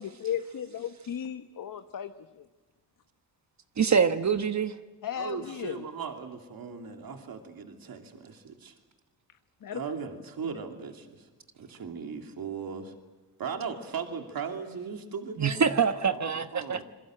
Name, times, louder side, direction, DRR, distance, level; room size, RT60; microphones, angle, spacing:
voice 1, 0.0-2.4 5.0-5.8 9.6-9.8, left 9 dB, 55° left, 1.1 m, -35 dB
voice 2, 3.8-4.8 15.4-16.8, right 6 dB, 45° right, 1.2 m, -25 dB
voice 3, 5.2-8.7 9.7-11.3 11.5-12.9 13.4-15.6 16.3-16.8, right 6 dB, 60° right, 2.9 m, -38 dB
27.0 x 22.0 x 7.8 m
cardioid pair, 95°, 40 cm